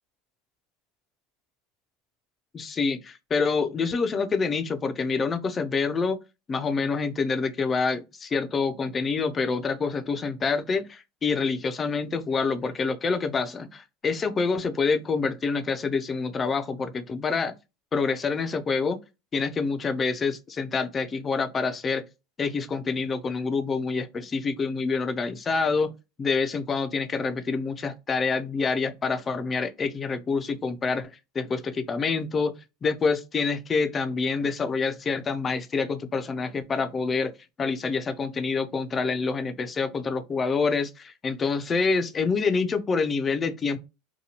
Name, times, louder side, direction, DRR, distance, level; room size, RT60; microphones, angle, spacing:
voice 1, 2.5-6.2 6.5-17.5 17.9-19.0 19.3-22.0 22.4-25.9 26.2-32.5 32.8-37.3 37.6-43.8, left 4 dB, 25° left, 0.4 m, -27 dB
2.8 x 2.2 x 2.8 m
supercardioid pair, 115°, 0 cm